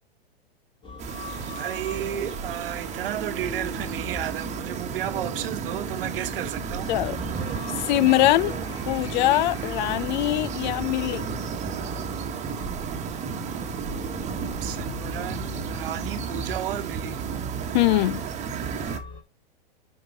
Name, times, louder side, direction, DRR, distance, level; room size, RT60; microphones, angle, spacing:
sound 1, 0.8-5.4 6.6-11.4 12.6-17.2 18.6-19.2, left 1 dB, 15° left, 2.2 m, -41 dB
sound 2, 1.0-19.0, right 6 dB, 20° right, 1.4 m, -32 dB
voice 1, 1.4-6.9 14.6-17.3, right 11 dB, 60° right, 1.2 m, -33 dB
voice 2, 7.8-8.5 8.9-11.2 17.7-18.2, left 16 dB, 45° left, 0.6 m, -22 dB
9.6 x 4.9 x 4.0 m
hypercardioid pair, 110°, 31 cm